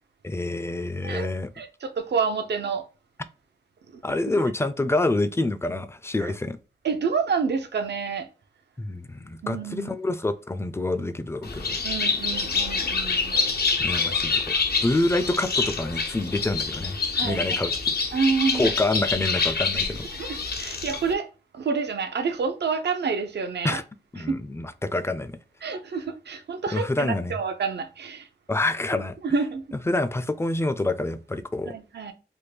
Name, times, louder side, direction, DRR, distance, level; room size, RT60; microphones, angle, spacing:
voice 1, 0.2-1.5 4.0-6.6 8.8-11.8 13.8-14.4 14.8-17.0 17.2-17.9 18.5-20.1 23.6-23.8 24.1-25.3 26.7-27.3 28.5-29.1 29.9-31.7, left 2 dB, 15° left, 0.4 m, -27 dB
voice 2, 1.6-2.8 3.9-4.4 6.2-6.3 6.8-8.3 9.4-9.9 11.8-13.4 17.1-17.6 18.1-18.8 20.1-21.3 21.5-23.8 24.2-24.4 25.6-28.3 29.2-29.6 31.6-32.1, right 5 dB, 80° right, 0.5 m, -28 dB
Bird, 11.4-21.1, left 4 dB, 65° left, 0.6 m, -26 dB
3.5 x 2.2 x 3.2 m
cardioid pair, 55°, 17 cm